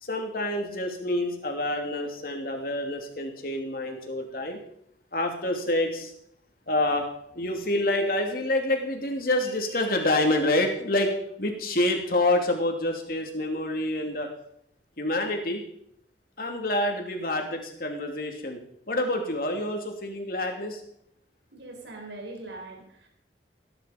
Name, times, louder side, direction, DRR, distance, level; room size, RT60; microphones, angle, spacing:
voice 1, 0.0-4.6 5.1-6.1 6.7-7.1 7.3-11.1 11.4-14.3 15.0-15.6 16.4-18.6 18.9-20.8, left 1 dB, 55° left, 3 dB, 2.9 m, -27 dB
voice 2, 21.5-23.1, right 2 dB, 85° right, 2 dB, 4.4 m, -41 dB
18.0 x 10.5 x 5.3 m, 0.72 s
head